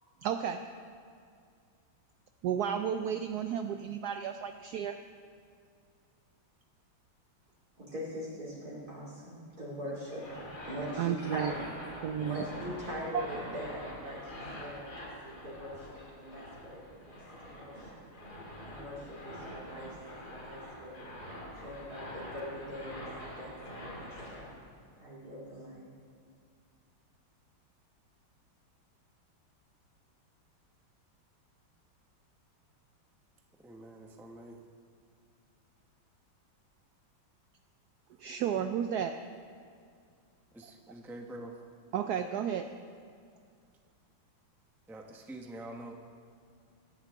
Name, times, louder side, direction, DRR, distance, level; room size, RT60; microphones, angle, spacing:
voice 1, 0.2-0.6 2.4-5.0 11.0-11.5 12.0-12.4 13.1-13.3 38.2-39.2 41.9-42.7, right 9 dB, 75° right, 7 dB, 0.9 m, -32 dB
voice 2, 7.8-10.3 10.6-11.9 12.2-15.9 16.2-17.2 17.4-18.0 18.6-21.0 21.6-24.7 25.0-25.8, equal, 50° right, -7 dB, 3.2 m, -42 dB
sound 1, 10.1-24.5, equal, 50° left, 3.4 m, -45 dB
voice 3, 33.6-34.6 40.5-41.6 44.9-45.9, right 1 dB, ahead, 2 dB, 0.6 m, -46 dB
23.5 x 10.5 x 3.6 m, 2.3 s
omnidirectional pair, 2.2 m